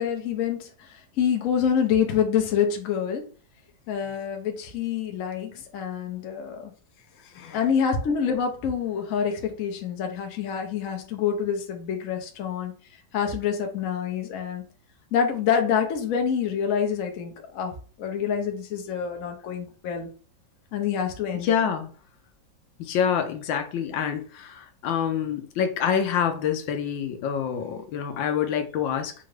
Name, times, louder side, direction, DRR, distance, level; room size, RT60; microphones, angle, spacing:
voice 1, 0.0-3.2 3.9-6.7 7.5-12.7 13.1-14.6 15.1-20.1 20.7-21.5, left 7 dB, 60° left, 0.9 m, -27 dB
voice 2, 7.2-7.6 21.3-21.9 22.8-29.1, left 8 dB, 80° left, 1.3 m, -27 dB
4.4 x 2.5 x 3.2 m
omnidirectional pair, 2.1 m